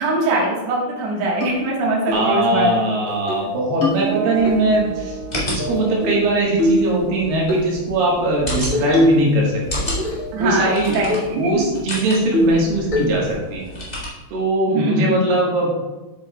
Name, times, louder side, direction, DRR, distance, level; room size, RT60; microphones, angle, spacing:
voice 1, 0.0-2.7 3.4-3.5 10.3-11.6 14.7-15.2, right 2 dB, 60° right, -3 dB, 2.4 m, -22 dB
sound 1, 1.4-1.5 2.1-2.3 2.6-2.7 3.1-3.4 3.8-4.5 5.6-6.2 6.6-6.9 7.5-7.7 8.7-9.3 9.6-10.3 10.7-10.8 11.1-11.3 11.7-11.8 12.3-12.6 12.9-13.3, left 1 dB, 75° left, 0.7 m, -21 dB
voice 2, 2.1-10.0 10.4-11.1 11.3-13.7 14.3-15.7, right 2 dB, 90° right, -3 dB, 3.2 m, -20 dB
sound 2, 4.0-8.0, right 6 dB, 40° right, 1.5 m, -33 dB
sound 3, 4.3-14.1, equal, 30° left, 0.7 m, -32 dB
7.7 x 7.6 x 2.3 m, 1.1 s
omnidirectional pair, 3.9 m